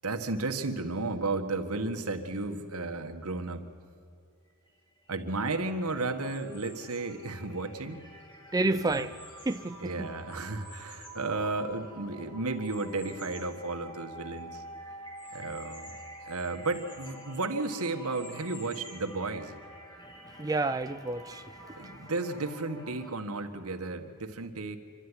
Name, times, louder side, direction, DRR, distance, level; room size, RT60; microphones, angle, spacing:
voice 1, 0.0-3.7 5.1-8.1 8.7-9.1 9.8-14.6 15.3-15.9 16.2-19.6 21.7-24.8, right 3 dB, 75° right, 6 dB, 1.6 m, -33 dB
sound 1, 4.5-4.7 5.0-23.1, right 1 dB, 20° left, 2.2 m, -49 dB
sound 2, 6.2-7.2 7.8-9.8 10.3-12.0 12.6-13.6 14.0-14.1 14.4-14.5 15.1-17.2 17.8-19.2, left 2 dB, 40° left, 5.4 m, -52 dB
voice 2, 8.5-9.1 9.4-10.1 20.1-22.0, right 2 dB, 15° right, 8 dB, 0.4 m, -31 dB
26.0 x 12.5 x 9.9 m, 2.4 s
head